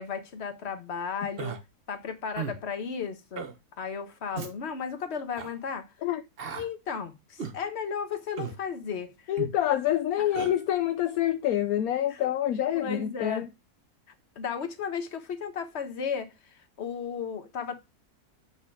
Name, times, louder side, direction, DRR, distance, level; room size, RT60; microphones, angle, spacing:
voice 1, 0.0-1.6 1.9-3.5 3.8-5.9 6.6-9.3 10.2-10.5 12.1-12.3 12.7-13.4 14.3-17.8, left 6 dB, 45° left, 1.4 m, -35 dB
Human voice, 1.4-1.6 2.4-2.6 3.3-3.5 4.3-4.5 5.3-5.5 6.4-6.7 7.4-7.6 8.4-8.6 9.4-9.6 10.3-10.5, right 6 dB, 40° right, 1.1 m, -35 dB
voice 2, 9.3-13.5, left 12 dB, 70° left, 1.0 m, -27 dB
8.8 x 3.5 x 4.9 m
omnidirectional pair, 1.7 m